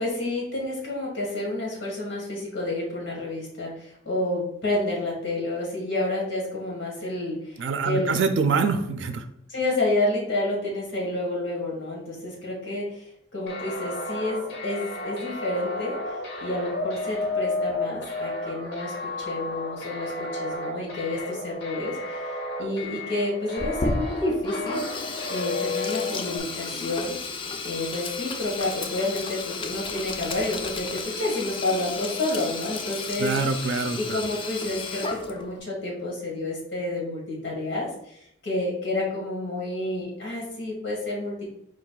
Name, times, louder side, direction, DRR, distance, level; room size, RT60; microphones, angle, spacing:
voice 1, 0.0-8.1 9.5-13.1 13.3-16.0 16.4-22.2 22.6-27.2 27.6-33.3 34.0-41.4, left 2 dB, 90° left, -3 dB, 1.6 m, -29 dB
voice 2, 7.6-9.2 33.2-34.2, right 5 dB, 70° right, 7 dB, 0.4 m, -25 dB
sound 1, 13.5-26.4, left 2 dB, 60° left, 0.7 m, -32 dB
Sink (filling or washing), 23.6-35.6, left 3 dB, 25° left, 0.3 m, -33 dB
4.8 x 2.4 x 3.8 m, 0.75 s
head